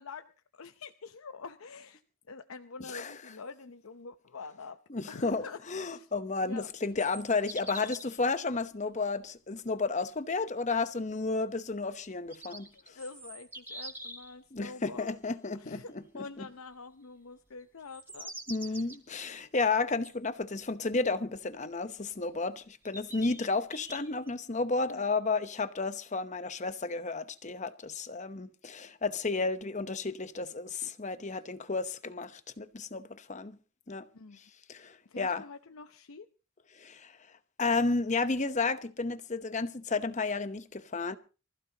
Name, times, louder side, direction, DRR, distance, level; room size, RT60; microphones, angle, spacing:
voice 1, 0.0-2.0 2.3-4.8 5.1-6.1 6.4-6.7 12.7-15.2 15.5-18.3 18.6-18.9 24.9-25.0 34.1-34.4 35.1-36.3, left 4 dB, 90° left, 0.7 m, -46 dB
voice 2, 4.9-13.0 14.5-15.8 16.1-16.5 18.5-33.6 33.9-34.1 34.4-34.5 34.7-35.4 36.7-37.2 37.6-41.2, left 3 dB, 35° left, 0.9 m, -32 dB
sound 1, 6.5-8.2 12.0-14.3 17.8-19.0 20.0-20.1 21.9-22.0 22.8-24.3, right 1 dB, 10° right, 3.3 m, -45 dB
24.5 x 15.0 x 2.9 m
head